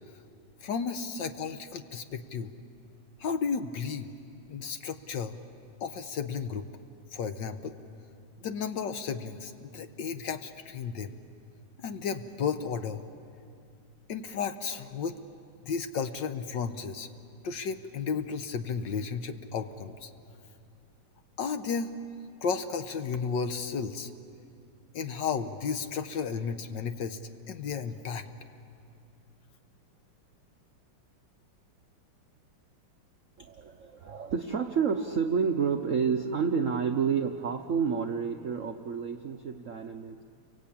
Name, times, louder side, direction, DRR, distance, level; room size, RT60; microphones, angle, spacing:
voice 1, 0.6-2.5 3.2-4.1 4.5-5.4 5.8-6.7 7.1-7.8 8.4-11.1 11.8-13.1 14.1-15.2 15.6-17.1 17.4-20.1 21.4-21.9 22.4-24.1 24.9-27.2 27.5-28.3, left 6 dB, 60° left, 8 dB, 1.5 m, -33 dB
voice 2, 33.4-40.2, right 6 dB, 60° right, 5 dB, 0.8 m, -29 dB
29.5 x 23.5 x 8.6 m, 2.4 s
omnidirectional pair, 2.4 m